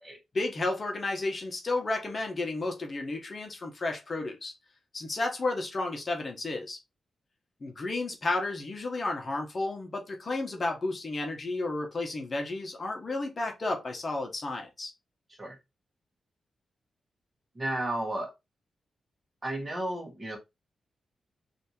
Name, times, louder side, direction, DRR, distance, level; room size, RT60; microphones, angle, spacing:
voice 1, 0.3-4.5 4.9-6.8 7.6-14.9, left 2 dB, 45° left, 1.0 m, -32 dB
voice 2, 17.5-18.3 19.4-20.4, right 1 dB, 30° right, 1.6 m, -33 dB
3.3 x 2.8 x 2.9 m
cardioid pair, 55°, 0 cm